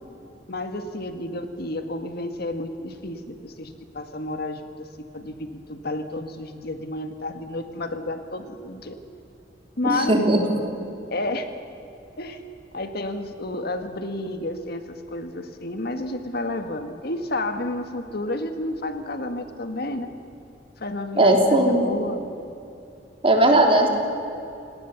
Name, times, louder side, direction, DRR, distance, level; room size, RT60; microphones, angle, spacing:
voice 1, 0.5-4.9 5.1-9.0 9.8-10.2 11.1-11.5 12.2-12.4 12.7-20.1 20.8-22.3, left 2 dB, 60° left, 7 dB, 1.6 m, -31 dB
voice 2, 9.8-10.4 21.2-21.8 23.2-23.9, right 1 dB, 30° right, 2 dB, 3.1 m, -17 dB
29.5 x 18.0 x 7.1 m, 2.8 s
head